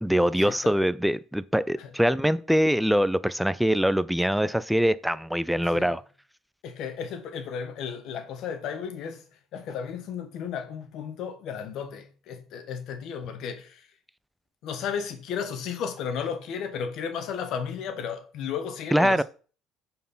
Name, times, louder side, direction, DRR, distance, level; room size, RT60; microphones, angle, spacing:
voice 1, 0.0-6.0 18.9-19.2, equal, ahead, 0.5 m, -23 dB
voice 2, 6.6-9.2 9.5-13.8 14.6-19.2, left 7 dB, 65° left, 1.2 m, -34 dB
9.2 x 4.5 x 5.6 m
cardioid pair, 100°, 0 cm